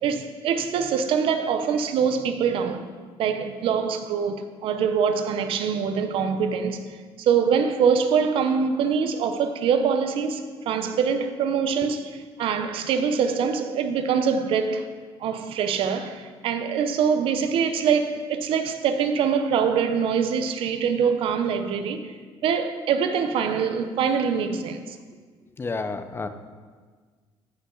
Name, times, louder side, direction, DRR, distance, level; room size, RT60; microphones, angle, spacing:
voice 1, 0.0-2.9 3.2-6.8 7.2-22.1 22.4-25.0, right 6 dB, 65° right, 0.8 m, -24 dB
voice 2, 25.6-26.3, left 3 dB, 25° left, 0.7 m, -30 dB
14.5 x 5.6 x 3.9 m
cardioid pair, 100°, 10 cm